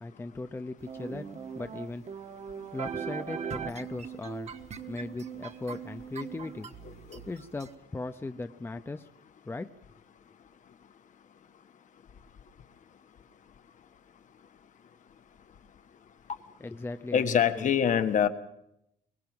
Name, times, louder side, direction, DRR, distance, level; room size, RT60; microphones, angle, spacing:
voice 1, 0.0-2.0 2.7-4.5 4.9-6.7 7.3-9.1 9.5-9.7 16.6-17.7, left 2 dB, 15° left, 9 dB, 0.7 m, -38 dB
sound 1, 0.9-7.7, right 7 dB, 40° right, 1.4 m, -40 dB
voice 2, 6.8-7.2 17.1-18.3, left 8 dB, 50° left, 9 dB, 1.4 m, -25 dB
22.5 x 20.0 x 6.0 m, 0.78 s
cardioid pair, 110°, 17 cm